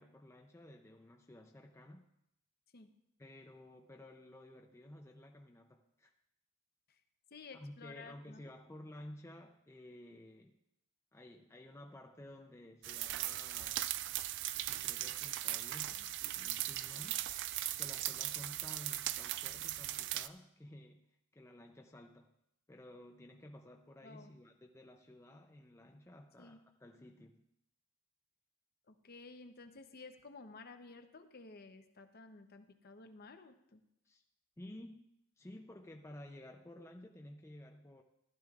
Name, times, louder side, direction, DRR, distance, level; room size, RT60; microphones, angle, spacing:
voice 1, 0.0-2.0 3.2-6.1 7.5-10.5 11.1-13.8 14.8-17.2 17.8-21.0 21.3-22.3 22.7-27.4 34.1-34.2 34.6-35.1 35.4-38.0, left 1 dB, 10° left, 3 dB, 0.4 m, -53 dB
voice 2, 7.3-8.5 24.0-24.3 26.4-26.6 28.9-33.8, left 3 dB, 45° left, 7 dB, 0.7 m, -54 dB
sound 1, 12.8-20.3, right 14 dB, 55° right, 0.3 m, -39 dB
15.0 x 12.0 x 2.4 m, 0.81 s
head